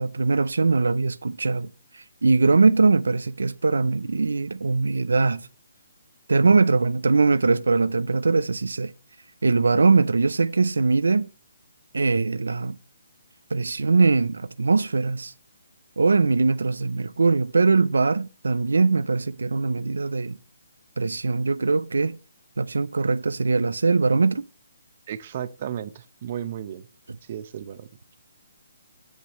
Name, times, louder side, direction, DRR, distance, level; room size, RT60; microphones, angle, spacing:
voice 1, 0.0-5.5 6.3-8.9 9.4-11.3 11.9-12.8 13.5-15.3 16.0-20.4 21.0-22.2 22.6-24.5 27.1-27.2, right 4 dB, 90° right, 0.4 m, -21 dB
voice 2, 25.1-26.9 27.3-27.9, right 10 dB, 40° right, 0.7 m, -34 dB
10.0 x 8.2 x 3.0 m
hypercardioid pair, 155°, 0 cm